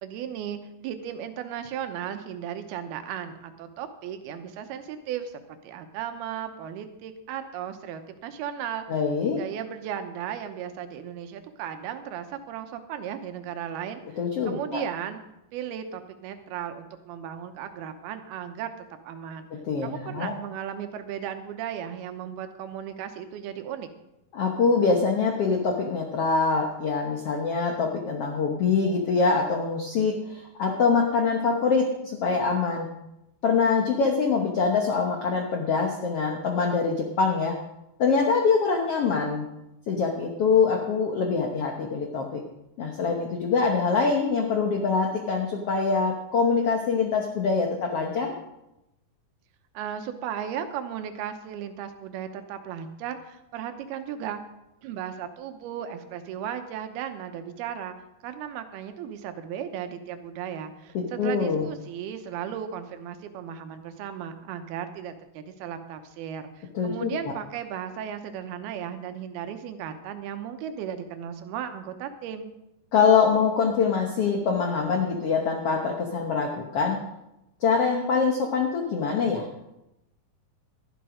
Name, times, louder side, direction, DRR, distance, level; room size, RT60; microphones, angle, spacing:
voice 1, 0.0-8.8 9.4-14.0 14.5-15.2 15.5-19.5 19.8-23.9 49.7-54.4 54.8-58.0 58.2-72.5, right 9 dB, 85° right, 8 dB, 2.9 m, -36 dB
voice 2, 8.9-9.4 14.2-14.8 19.6-20.3 24.3-32.9 33.4-37.6 38.0-39.5 39.9-42.4 42.8-48.3 60.9-61.7 66.7-67.1 72.9-77.0 77.6-79.5, left 5 dB, 75° left, 2 dB, 1.3 m, -24 dB
13.0 x 11.5 x 5.0 m, 0.90 s
omnidirectional pair, 4.4 m